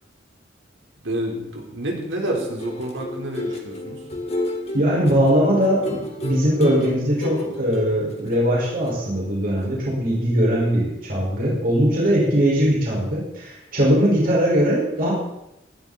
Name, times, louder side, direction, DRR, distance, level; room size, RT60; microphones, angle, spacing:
voice 1, 1.0-4.0, right 1 dB, 85° right, 0 dB, 4.2 m, -28 dB
sound 1, 2.1-9.3 9.6-9.8, left 1 dB, 35° left, 2.3 m, -32 dB
voice 2, 4.7-15.1, equal, 50° right, -4 dB, 5.5 m, -20 dB
19.0 x 12.0 x 4.3 m, 0.86 s
head